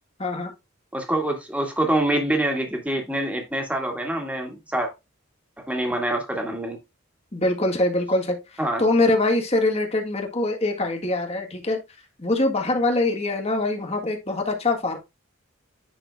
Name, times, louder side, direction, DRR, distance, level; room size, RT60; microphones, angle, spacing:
voice 1, 0.2-0.5 7.3-11.8 12.2-15.0, left 2 dB, 30° left, 1.8 m, -23 dB
voice 2, 0.9-4.9 5.6-6.8 8.6-8.8, right 1 dB, 5° right, 1.8 m, -25 dB
10.0 x 5.9 x 2.3 m
head